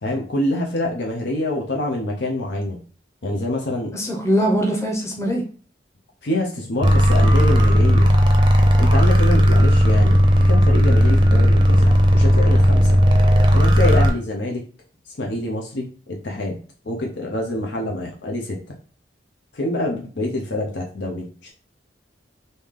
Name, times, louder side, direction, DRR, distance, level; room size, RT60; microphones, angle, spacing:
voice 1, 0.0-2.8 3.2-4.0 6.2-8.1 8.8-13.0 13.5-14.6 15.2-16.6 16.8-18.8 19.5-21.5, left 1 dB, 85° left, 0 dB, 0.7 m, -26 dB
voice 2, 3.9-5.4, equal, 15° left, 0 dB, 0.8 m, -21 dB
sound 1, 6.8-14.1, equal, 25° right, 0.5 m, -15 dB
3.3 x 2.8 x 3.6 m, 0.39 s
head